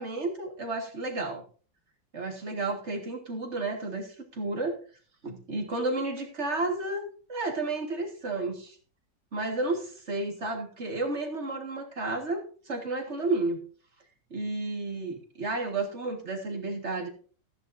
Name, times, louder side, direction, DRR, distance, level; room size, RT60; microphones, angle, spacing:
voice 1, 0.0-1.4 2.1-4.8 5.2-8.8 9.3-12.4 12.7-13.6 14.3-17.1, right 2 dB, 40° right, 2 dB, 1.9 m, -32 dB
14.0 x 10.0 x 2.6 m, 0.40 s
omnidirectional pair, 2.0 m